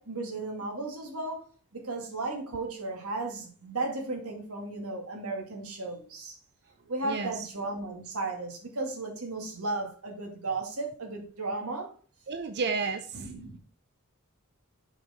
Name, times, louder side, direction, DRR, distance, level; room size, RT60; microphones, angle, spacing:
voice 1, 0.0-1.5 1.7-6.4 6.9-11.9 13.1-13.6, right 2 dB, 90° right, 2 dB, 2.2 m, -35 dB
voice 2, 12.3-13.3, right 4 dB, 50° right, 7 dB, 0.6 m, -31 dB
6.8 x 4.5 x 5.1 m, 0.40 s
head